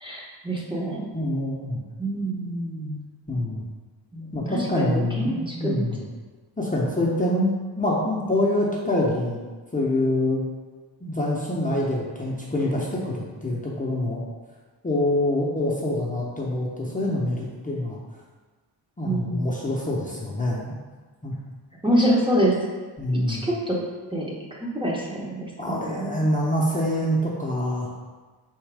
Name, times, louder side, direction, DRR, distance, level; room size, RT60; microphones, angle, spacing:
voice 1, 0.0-1.1 2.0-3.0 4.1-5.8 19.0-19.5 21.8-22.5 23.1-23.8 24.1-24.3 24.6-26.2, right 1 dB, 10° right, -4 dB, 0.9 m, -26 dB
voice 2, 1.1-1.8 3.3-3.6 4.3-6.0 6.6-9.4 9.7-10.4 11.0-14.2 14.8-18.0 19.0-20.8 21.2-21.3 23.0-23.5 25.6-27.9, left 1 dB, 20° left, -5 dB, 0.7 m, -25 dB
4.1 x 3.6 x 3.4 m, 1.3 s
cardioid pair, 75°, 44 cm